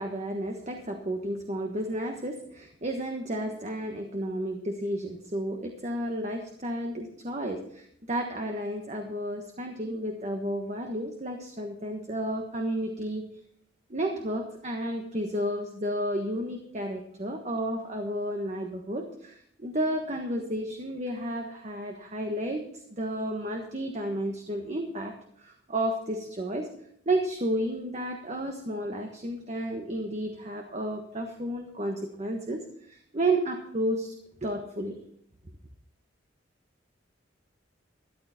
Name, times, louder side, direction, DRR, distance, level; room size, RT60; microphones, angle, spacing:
voice 1, 0.0-13.3 13.9-26.7 27.0-34.1 34.4-35.0, right 1 dB, 40° right, 3 dB, 1.4 m, -32 dB
13.5 x 11.5 x 4.3 m, 0.67 s
head